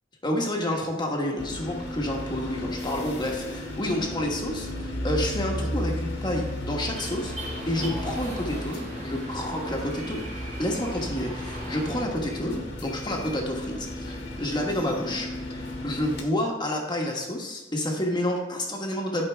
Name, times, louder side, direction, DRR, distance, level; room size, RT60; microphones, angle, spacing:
voice 1, 0.2-7.3 7.7-10.2 10.6-19.3, left 1 dB, 25° left, 0 dB, 1.4 m, -29 dB
sound 1, 1.4-16.2, left 1 dB, 65° left, 1.5 m, -34 dB
sound 2, 6.8-12.0, right 1 dB, 40° right, 2.3 m, -39 dB
12.5 x 5.1 x 3.5 m, 1.1 s
head